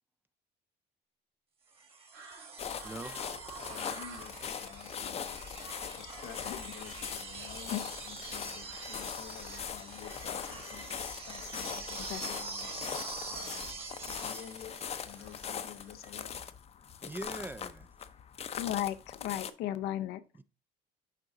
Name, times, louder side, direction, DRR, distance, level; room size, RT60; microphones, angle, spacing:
sound 1, 1.8-15.8 17.2-17.3, right 4 dB, 35° right, 1.7 m, -45 dB
sound 2, 2.1-16.4, right 4 dB, 80° right, 2.8 m, -57 dB
sound 3, 2.6-19.5, left 8 dB, 40° left, 0.6 m, -41 dB
voice 1, 2.8-3.2 17.0-17.9 20.4-20.5, right 1 dB, 10° right, 0.3 m, -42 dB
voice 2, 3.6-5.4 5.9-12.8 13.3-13.8 14.1-14.8 15.0-16.4, left 9 dB, 65° left, 0.9 m, -50 dB
voice 3, 18.6-20.2, left 12 dB, 80° left, 0.5 m, -35 dB
6.6 x 4.8 x 3.7 m
cardioid pair, 110°, 17 cm